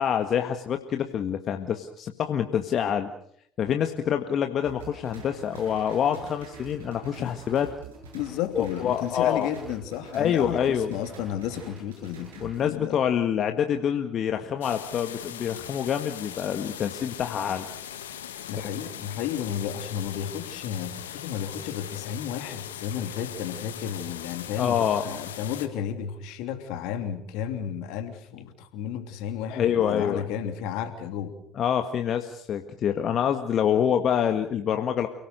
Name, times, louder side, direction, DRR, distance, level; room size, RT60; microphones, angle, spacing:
voice 1, 0.0-3.1 3.6-7.7 8.6-9.5 10.1-10.9 12.4-17.7 24.6-25.0 29.5-30.2 31.6-35.1, left 9 dB, 50° left, 6 dB, 1.8 m, -26 dB
sound 1, 4.6-12.6, right 5 dB, 85° right, 7.4 m, -45 dB
voice 2, 8.1-13.0 18.5-31.3, left 9 dB, 70° left, 8 dB, 3.0 m, -33 dB
sound 2, 14.6-25.7, left 9 dB, 85° left, 1.8 m, -40 dB
29.5 x 18.5 x 6.8 m, 0.66 s
hypercardioid pair, 60°, 0 cm